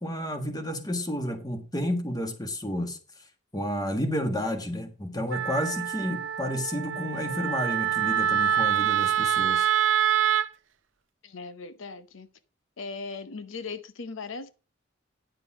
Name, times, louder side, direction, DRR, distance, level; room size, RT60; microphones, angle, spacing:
voice 1, 0.0-3.0 3.5-9.7, equal, 20° left, 1.5 m, -31 dB
Wind instrument woodwind instrument, 5.3-10.5, right 9 dB, 70° right, 0.7 m, -25 dB
voice 2, 11.2-12.3 12.8-14.5, left 4 dB, 75° left, 0.7 m, -38 dB
10.0 x 6.7 x 4.7 m
head